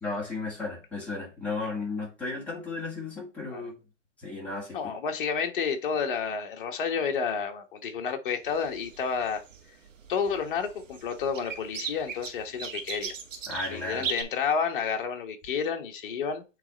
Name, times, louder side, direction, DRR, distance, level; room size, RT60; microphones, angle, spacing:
voice 1, 0.0-3.7 4.2-4.8 13.5-14.1, left 3 dB, 5° left, 2.2 m, -34 dB
voice 2, 4.7-9.4 10.1-13.1 13.7-16.4, left 6 dB, 40° left, 1.3 m, -30 dB
sound 1, 8.5-14.2, right 6 dB, 75° right, 1.8 m, -38 dB
8.4 x 3.4 x 4.0 m
hypercardioid pair, 155°, 38 cm